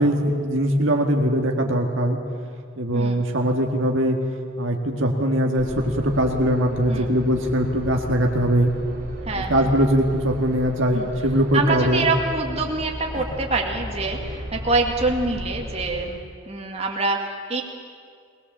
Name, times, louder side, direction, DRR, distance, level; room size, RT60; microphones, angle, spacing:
voice 1, 0.0-2.2 2.8-4.2 4.6-8.7 9.3-12.0 13.2-13.3, equal, 65° right, 2 dB, 1.7 m, -21 dB
sound 1, 5.6-16.0, equal, 50° right, 3.0 m, -35 dB
voice 2, 9.2-9.6 10.9-11.1 11.5-16.2 16.5-17.6, right 3 dB, 30° right, 0 dB, 2.1 m, -25 dB
20.5 x 20.5 x 7.4 m, 2.2 s
head